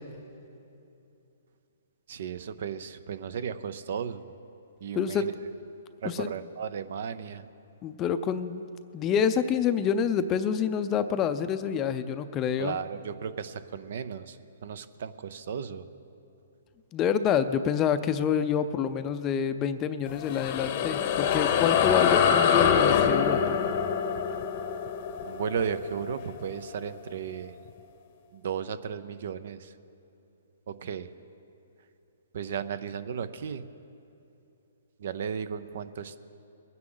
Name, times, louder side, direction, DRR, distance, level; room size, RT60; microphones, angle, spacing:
voice 1, 2.1-4.3 4.8-5.3 6.0-7.5 12.6-14.4 14.6-15.8 25.3-27.5 28.3-29.7 30.7-31.1 32.3-33.6 35.0-36.2, right 7 dB, 60° right, 13 dB, 0.6 m, -35 dB
voice 2, 5.0-5.3 6.0-6.3 7.8-8.6 8.9-12.8 16.9-23.6, left 7 dB, 20° left, 11 dB, 0.5 m, -27 dB
sound 1, 20.1-26.9, left 8 dB, 45° left, 0.8 m, -25 dB
22.0 x 9.5 x 3.9 m, 2.7 s
hypercardioid pair, 145°, 0 cm